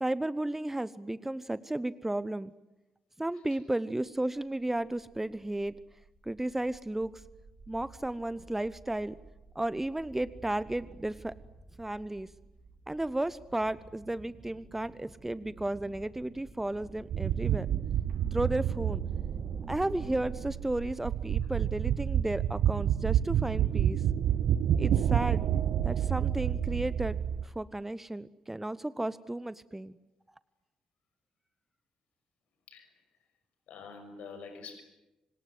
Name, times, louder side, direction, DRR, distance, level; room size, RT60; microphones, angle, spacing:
voice 1, 0.0-2.5 3.2-5.7 6.3-7.1 7.7-9.2 9.5-11.3 11.8-12.3 12.9-17.7 18.2-19.0 19.7-24.0 24.8-25.4 25.8-27.2 27.4-29.9, right 1 dB, 10° right, 18 dB, 1.0 m, -33 dB
sound 1, 4.0-4.1 4.4-20.5, right 3 dB, 35° right, 5.5 m, -50 dB
sound 2, 17.1-27.4, right 10 dB, 60° right, 1.0 m, -29 dB
voice 2, 33.7-34.8, left 5 dB, 60° left, 7 dB, 6.3 m, -46 dB
29.5 x 26.0 x 7.8 m, 0.95 s
figure-of-eight pair, 40°, 3 cm